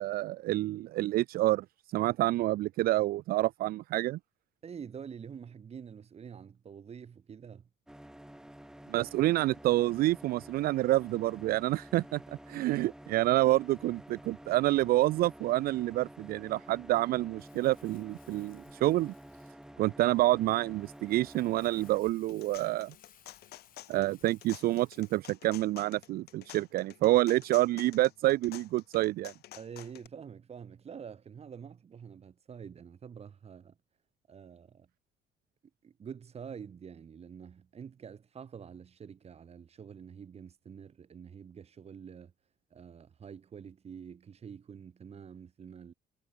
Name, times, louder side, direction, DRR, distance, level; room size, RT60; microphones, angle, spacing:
voice 1, 0.0-4.2 8.9-12.2 12.5-19.1 19.8-22.9 23.9-29.3, right 16 dB, 65° right, 0.4 m, -28 dB
voice 2, 4.6-7.7 29.6-33.8 34.3-34.9 35.8-42.3 42.7-45.9, right 7 dB, 40° right, 2.2 m, -47 dB
sound 1, 7.9-22.0, right 1 dB, 5° right, 2.3 m, -50 dB
Crumpling crinkling, 17.4-25.3, left 10 dB, 55° left, 6.3 m, -63 dB
sound 2, 22.1-30.1, left 15 dB, 75° left, 2.7 m, -50 dB
cardioid pair, 110°, 17 cm